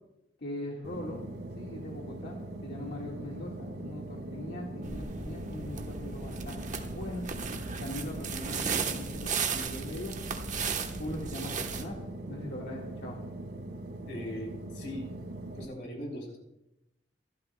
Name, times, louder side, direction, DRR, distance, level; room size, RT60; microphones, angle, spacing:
voice 1, 0.4-1.2 1.5-7.2 7.8-10.2 11.0-12.0 12.3-13.2, left 1 dB, 65° left, -2 dB, 1.8 m, -41 dB
sound 1, 0.8-15.7, right 1 dB, 90° right, 2.3 m, -41 dB
sound 2, 4.8-11.9, right 5 dB, 45° right, 1.1 m, -36 dB
voice 2, 14.0-15.1 15.4-16.4, equal, 85° left, -1 dB, 3.7 m, -40 dB
25.5 x 12.0 x 2.3 m, 0.88 s
head